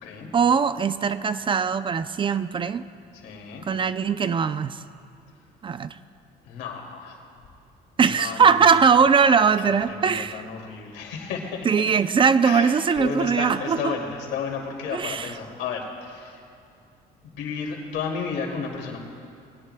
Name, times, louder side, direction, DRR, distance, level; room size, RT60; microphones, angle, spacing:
voice 1, 0.3-2.8 3.7-4.8 5.6-6.0 8.0-10.4 11.7-13.9 14.9-15.3, right 6 dB, 30° right, 13 dB, 0.4 m, -21 dB
voice 2, 3.1-3.6 6.4-7.2 8.0-8.8 9.6-11.7 12.4-16.4 17.2-19.0, left 5 dB, 85° left, 0 dB, 2.5 m, -33 dB
21.5 x 17.0 x 2.2 m, 2.4 s
cardioid pair, 110°, 17 cm